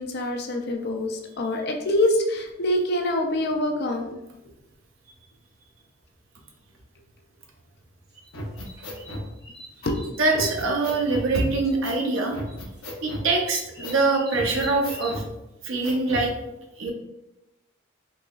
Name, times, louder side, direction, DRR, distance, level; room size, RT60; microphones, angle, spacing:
voice 1, 0.0-4.2 9.9-10.1 10.3-10.4, left 1 dB, 50° left, 2 dB, 0.4 m, -25 dB
sound 1, 8.1-11.4 11.6-12.2 12.5-15.2, left 1 dB, 20° right, 1.0 m, -44 dB
sound 2, 8.3-9.3 9.8-9.9 10.3-11.3 11.8-12.0 12.3-13.3 13.8-14.0 14.3-15.3 15.8-16.3, equal, 80° left, 0.8 m, -35 dB
voice 2, 10.2-12.4 13.0-15.2 15.6-16.3 16.8-16.9, right 3 dB, 70° right, 1 dB, 0.6 m, -24 dB
3.7 x 3.0 x 2.3 m, 0.93 s
head